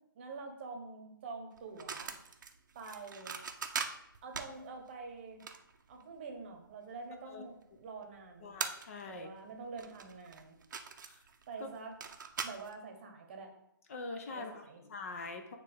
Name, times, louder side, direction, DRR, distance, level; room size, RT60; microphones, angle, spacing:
voice 1, 0.1-2.1 2.7-3.3 4.2-5.4 5.9-8.6 9.1-10.6 11.5-11.9 12.4-13.5 14.3-14.8, right 4 dB, 30° right, 3 dB, 1.0 m, -46 dB
sound 1, 1.6-6.7 7.2-7.3 8.1-8.2 8.5-9.3 9.5-12.7, right 6 dB, 55° right, 0.6 m, -41 dB
voice 2, 8.4-9.3 11.0-11.2 13.9-14.5 14.9-15.6, left 3 dB, 40° left, 5 dB, 0.6 m, -43 dB
8.8 x 3.2 x 3.6 m, 0.79 s
hypercardioid pair, 160°, 12 cm